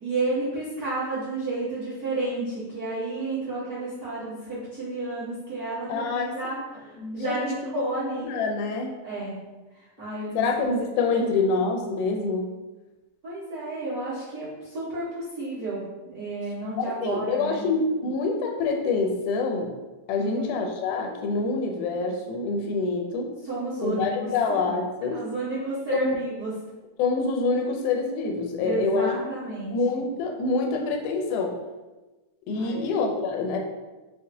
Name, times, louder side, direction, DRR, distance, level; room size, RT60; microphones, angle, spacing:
voice 1, 0.0-8.3 9.0-9.4 9.7-10.4 11.1-11.4 13.2-17.6 20.2-20.4 23.4-24.3 25.1-26.5 28.6-29.7 32.5-32.9, right 2 dB, 60° right, -12 dB, 0.9 m, -31 dB
voice 2, 5.9-6.3 7.0-8.9 10.4-12.5 16.8-19.7 20.1-23.3 23.8-25.2 25.9-26.2 27.0-29.1 29.7-31.5 32.5-33.6, left 3 dB, 85° left, 2 dB, 2.0 m, -26 dB
5.7 x 2.1 x 2.7 m, 1.1 s
omnidirectional pair, 3.6 m